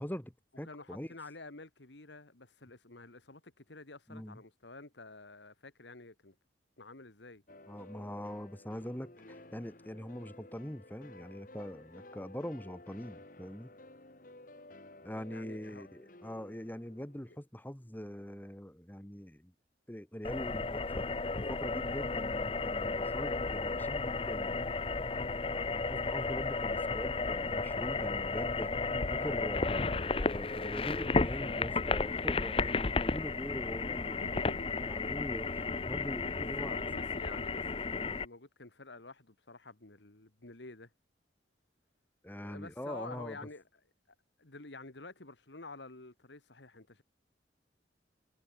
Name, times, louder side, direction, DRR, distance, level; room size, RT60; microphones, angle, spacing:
voice 1, 0.0-1.1 4.1-4.4 7.7-13.7 15.0-19.5 19.9-21.1 21.5-24.6 25.7-28.7 29.1-34.3 34.8-36.8 42.2-43.4, equal, 10° left, 1.2 m, -43 dB
voice 2, 0.7-6.4 6.8-7.4 15.3-15.9 34.1-34.7 36.6-40.9 42.3-43.6 44.4-47.0, left 3 dB, 75° left, 2.1 m, -49 dB
sound 1, 7.5-17.4, left 2 dB, 45° left, 2.0 m, -54 dB
sound 2, 20.2-38.3, left 3 dB, 30° left, 0.8 m, -33 dB
head